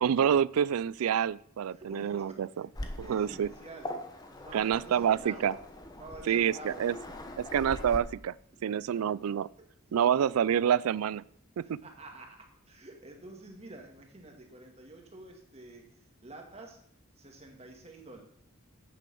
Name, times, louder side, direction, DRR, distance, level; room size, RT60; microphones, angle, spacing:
voice 1, 0.0-2.5 3.1-3.5 4.5-5.5 6.3-6.9 7.5-8.3 8.6-9.5 9.9-11.2 11.6-11.8, right 8 dB, 90° right, 22 dB, 0.3 m, -27 dB
voice 2, 1.7-2.7 3.0-3.9 4.3-5.6 5.9-7.2 8.6-9.1 9.6-10.2 11.6-16.8 17.2-18.2, right 2 dB, 30° right, 2 dB, 2.0 m, -49 dB
Waves surf, 2.7-8.0, left 1 dB, 20° left, 1.1 m, -42 dB
9.4 x 6.9 x 7.0 m, 0.66 s
head